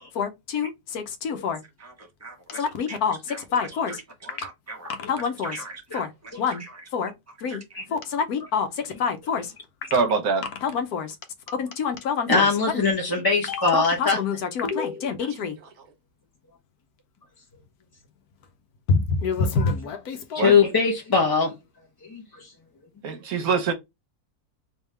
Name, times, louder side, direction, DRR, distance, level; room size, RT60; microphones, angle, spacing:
voice 1, 0.1-1.6 2.6-4.0 4.9-5.6 5.9-6.1 6.4-6.6 6.9-7.1 7.4-7.6 7.9-9.5 10.6-11.2 11.5-12.5 12.7-12.8 13.5-15.6 18.9-20.4, left 5 dB, 80° left, 1.3 m, -27 dB
voice 2, 2.2-3.0 3.3-6.8 7.5-7.8, right 3 dB, 10° right, 1.0 m, -41 dB
voice 3, 9.9-10.4 20.4-20.5 23.0-23.7, right 4 dB, 70° right, 1.4 m, -23 dB
voice 4, 12.3-14.2 20.3-21.6 22.0-22.5, left 4 dB, 25° left, 0.5 m, -21 dB
3.6 x 3.1 x 3.2 m
omnidirectional pair, 1.6 m